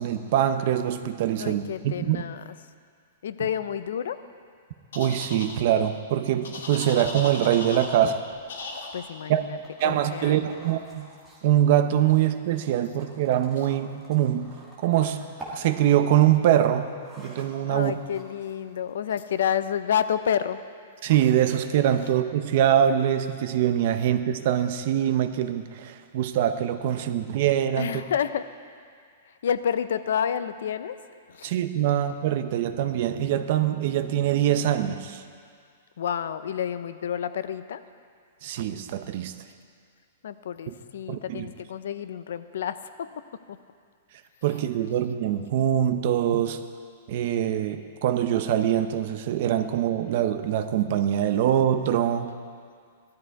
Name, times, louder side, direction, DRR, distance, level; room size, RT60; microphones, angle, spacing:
voice 1, 0.0-2.2 4.9-8.2 9.3-9.4 9.8-11.1 11.4-14.5 14.8-15.3 15.5-18.0 21.0-28.0 31.4-35.2 38.4-39.3 40.7-40.8 41.1-41.5 44.4-46.6 47.1-52.3, right 10 dB, 40° right, 10 dB, 0.6 m, -24 dB
voice 2, 1.4-2.4 3.2-4.2 8.9-9.6 9.8-10.6 17.7-20.6 27.8-28.5 29.4-31.0 31.3-31.5 36.0-37.8 40.2-43.6, left 8 dB, 65° left, 13 dB, 0.6 m, -29 dB
sound 1, 4.9-5.5 6.4-8.0 8.5-8.9, left 3 dB, 85° left, 2.5 m, -37 dB
sound 2, 7.9-19.6, right 1 dB, 5° right, 1.9 m, -49 dB
16.5 x 12.5 x 4.7 m, 2.1 s
hypercardioid pair, 180°, 0 cm